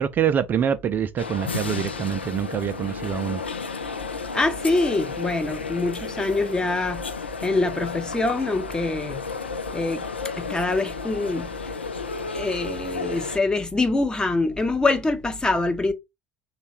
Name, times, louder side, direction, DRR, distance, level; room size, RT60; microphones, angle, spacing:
voice 1, 0.0-3.4, right 8 dB, 35° right, 0.3 m, -25 dB
sound 1, 1.2-13.4, left 4 dB, 85° left, 0.3 m, -33 dB
voice 2, 4.3-7.1 7.4-9.2 9.7-10.0 10.3-11.6 12.3-15.9, left 2 dB, 15° left, 0.7 m, -24 dB
3.1 x 2.2 x 4.2 m
figure-of-eight pair, 65°, 6 cm